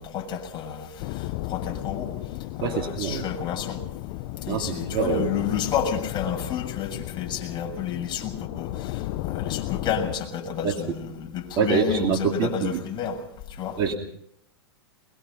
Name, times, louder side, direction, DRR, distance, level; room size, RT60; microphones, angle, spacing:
voice 1, 0.0-2.1 2.5-3.8 4.4-13.2 13.6-13.8, left 7 dB, 30° left, 2 dB, 6.9 m, -30 dB
sound 1, 1.0-10.2, left 16 dB, 45° left, 0.9 m, -34 dB
voice 2, 2.6-3.2 4.5-5.3 10.6-10.8 11.6-12.8 13.8-13.9, right 5 dB, 40° right, 1 dB, 2.9 m, -25 dB
23.0 x 22.0 x 5.5 m, 0.70 s
hypercardioid pair, 115°, 14 cm